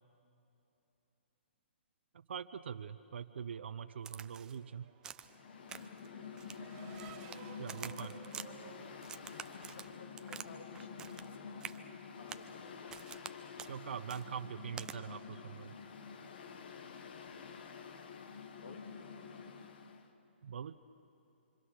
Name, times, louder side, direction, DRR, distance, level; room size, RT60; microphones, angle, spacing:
voice 1, 2.1-4.9 7.6-8.1 13.7-15.7 20.4-20.8, right 7 dB, 70° right, 8 dB, 0.7 m, -43 dB
Race car auto racing / Accelerating revving vroom, 4.0-10.1, right 9 dB, 30° right, 1.2 m, -57 dB
Crack, 4.1-4.6 5.0-5.4 5.7-6.1 6.4-7.4 7.7-8.5 9.0-10.5 10.8-11.3 11.6-11.8 12.3-12.5 12.9-13.3 13.6-13.7 14.1-14.2 14.8-15.0, right 8 dB, 10° right, 0.5 m, -47 dB
Mechanical fan, 5.2-20.1, left 6 dB, 55° left, 1.7 m, -49 dB
voice 2, 8.0-8.7 9.2-11.5 12.2-13.0 18.6-18.9, left 4 dB, 75° left, 2 dB, 3.1 m, -55 dB
26.0 x 25.5 x 6.4 m, 3.0 s
hypercardioid pair, 155°, 6 cm